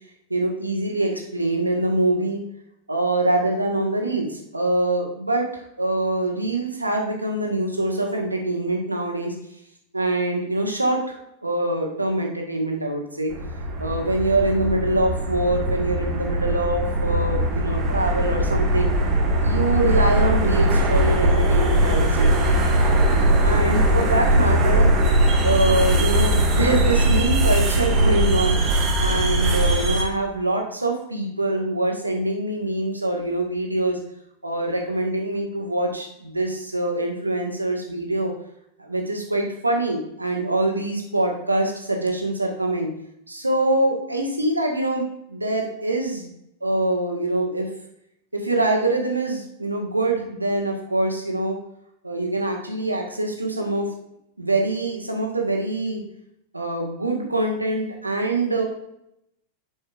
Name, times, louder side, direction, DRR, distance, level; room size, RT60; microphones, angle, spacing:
voice 1, 0.3-2.4 2.9-9.3 9.9-13.3 13.8-18.9 19.4-22.3 23.4-24.9 25.4-28.6 29.0-34.0 34.4-38.3 38.8-42.9 43.3-46.3 46.6-47.7 48.3-51.6 52.0-53.9 54.4-56.0 56.5-58.6, right 2 dB, 85° right, 1 dB, 1.4 m, -24 dB
sound 1, 13.3-30.0, right 1 dB, 30° right, 1.6 m, -20 dB
9.2 x 6.2 x 2.4 m, 0.78 s
figure-of-eight pair, 90°, 0 cm